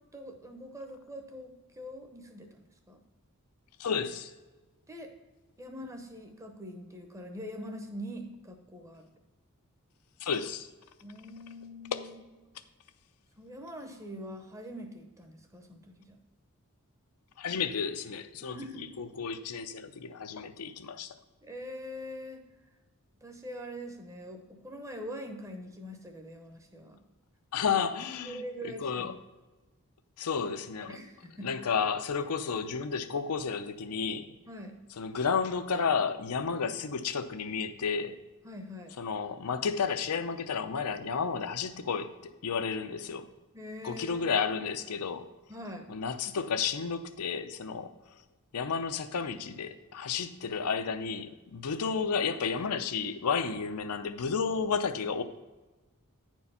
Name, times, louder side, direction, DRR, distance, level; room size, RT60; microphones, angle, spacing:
voice 1, 0.1-2.6 2.9-3.0 4.9-5.1 5.6-9.1 11.0-12.2 13.4-16.2 18.4-18.9 21.4-22.4 23.2-27.0 28.2-29.1 30.9-31.5 34.5-34.8 38.4-38.9 43.5-44.2 45.5-45.9, equal, 15° right, 5 dB, 0.8 m, -43 dB
voice 2, 3.8-4.3 10.2-10.7 11.9-12.0 17.4-21.1 27.5-29.1 30.2-31.0 31.4-34.3 35.0-38.2 39.0-43.3 43.8-45.3 45.9-47.9 48.5-55.2, left 6 dB, 85° left, 10 dB, 0.6 m, -32 dB
9.4 x 4.6 x 5.5 m, 1.2 s
head